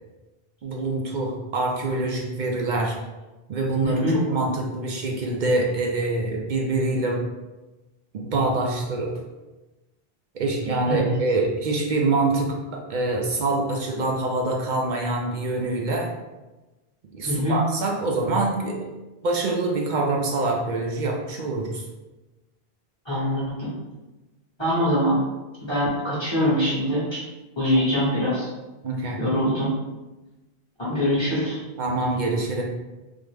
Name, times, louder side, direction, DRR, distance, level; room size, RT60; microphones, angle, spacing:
voice 1, 0.6-3.0 3.5-4.0 4.3-7.2 8.1-9.1 10.3-16.1 17.1-18.8 19.2-21.8 28.8-29.2 31.8-32.6, right 2 dB, 60° right, -1 dB, 0.6 m, -25 dB
voice 2, 3.8-4.2 10.9-11.1 17.2-17.6 23.0-23.7 24.6-25.2 25.6-27.2 27.6-28.5 29.2-29.7 30.8-31.6, equal, 30° left, -9 dB, 1.0 m, -23 dB
3.4 x 2.1 x 3.3 m, 1.1 s
omnidirectional pair, 1.1 m